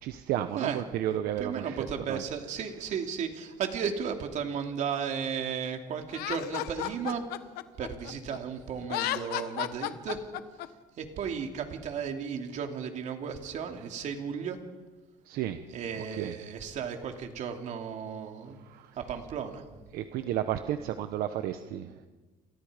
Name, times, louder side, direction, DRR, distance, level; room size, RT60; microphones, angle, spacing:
voice 1, 0.0-2.2 15.2-15.6 16.0-16.3 18.6-19.0 19.9-21.9, right 11 dB, 70° right, 9 dB, 1.2 m, -33 dB
voice 2, 1.4-7.3 7.8-10.2 11.0-14.6 15.7-18.6 19.0-19.6, right 7 dB, 50° right, 4 dB, 3.0 m, -34 dB
Laughter, 6.1-8.4 8.8-10.7, left 14 dB, 80° left, 1.3 m, -33 dB
30.0 x 28.0 x 5.2 m, 1.3 s
cardioid pair, 145°, 16 cm